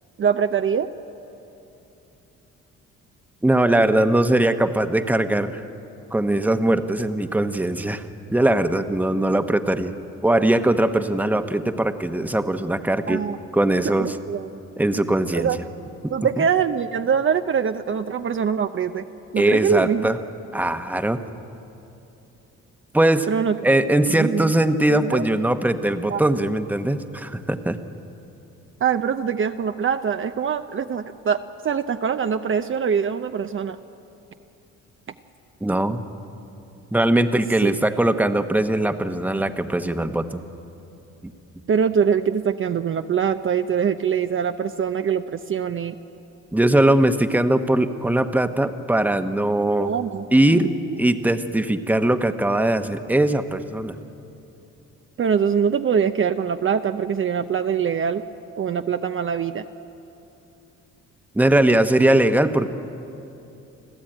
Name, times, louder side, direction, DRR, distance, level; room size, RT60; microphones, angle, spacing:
voice 1, 0.2-0.9 13.1-13.4 14.0-14.5 15.3-15.6 16.1-19.1 19.3-20.1 23.3-23.6 24.1-24.5 24.9-25.2 26.1-26.2 28.8-33.8 37.6-37.7 41.7-46.0 49.8-50.3 55.2-58.2 58.6-59.6, right 7 dB, 45° right, 8 dB, 0.7 m, -23 dB
voice 2, 3.4-5.6 6.1-8.0 8.3-9.9 10.2-13.2 13.5-14.2 14.8-15.5 16.4-16.5 19.4-20.2 20.5-21.2 22.9-23.3 23.6-27.8 35.6-36.0 36.9-40.4 46.5-49.9 50.3-50.7 51.0-54.0 61.3-62.7, right 1 dB, 5° right, 8 dB, 1.1 m, -20 dB
29.0 x 12.5 x 9.0 m, 2.9 s
cardioid pair, 90°, 30 cm